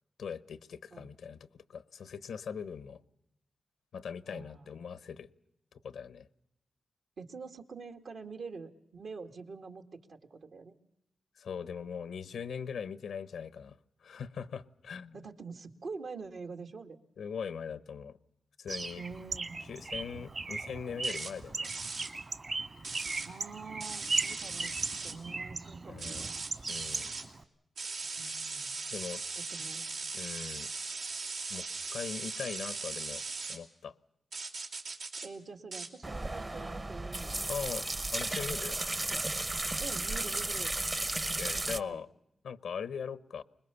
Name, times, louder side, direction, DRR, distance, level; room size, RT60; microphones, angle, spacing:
voice 1, 0.2-3.0 3.9-5.3 5.8-6.3 11.4-15.2 17.2-18.2 18.6-19.0 19.6-21.7 25.9-26.3 26.7-27.1 28.9-29.2 30.1-30.7 31.5-31.7 31.9-33.2 33.5-33.9 37.5-37.9 38.1-38.8 41.4-42.1 42.4-43.4, left 6 dB, 90° left, 16 dB, 0.8 m, -40 dB
voice 2, 4.3-4.7 7.2-10.7 15.1-17.0 19.0-19.6 23.2-24.8 25.0-26.3 28.2-28.7 29.4-30.2 35.2-37.5 39.8-40.7 41.6-42.0, right 4 dB, 75° right, 4 dB, 2.1 m, -46 dB
Bird, 18.7-27.4, right 3 dB, 50° right, 1.9 m, -38 dB
sound 1, 21.0-21.3 21.6-22.1 22.8-23.3 23.8-25.1 26.0-27.3 27.8-33.6 34.3-35.3 35.7-35.9, right 4 dB, 90° right, 3.1 m, -39 dB
sound 2, 36.0-41.8, right 2 dB, 30° right, 0.9 m, -34 dB
24.5 x 21.0 x 7.0 m, 0.82 s
cardioid pair, 65°, 0 cm